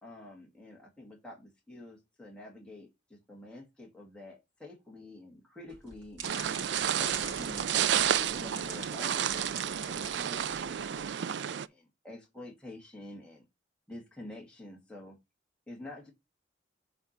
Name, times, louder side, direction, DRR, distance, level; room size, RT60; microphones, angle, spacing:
voice 1, 0.0-6.4 7.0-7.7 8.1-13.4 13.9-15.2 15.7-16.1, left 2 dB, 5° left, 2.2 m, -48 dB
sound 1, 5.7-11.1, right 6 dB, 80° right, 2.4 m, -43 dB
sound 2, 6.2-11.7, right 9 dB, 60° right, 0.4 m, -31 dB
8.0 x 3.8 x 4.4 m
head